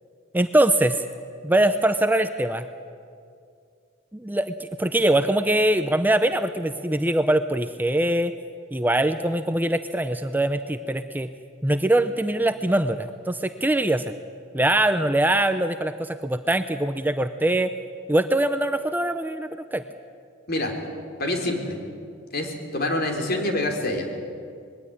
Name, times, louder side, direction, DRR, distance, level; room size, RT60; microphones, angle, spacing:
voice 1, 0.3-1.0 1.4-2.7 4.1-8.3 8.7-11.3 11.6-14.1 14.5-17.7 18.1-19.8, right 1 dB, 10° right, 9 dB, 0.6 m, -22 dB
voice 2, 21.2-21.8 22.3-24.1, left 1 dB, 50° left, 3 dB, 3.4 m, -26 dB
21.0 x 16.5 x 9.9 m, 2.3 s
head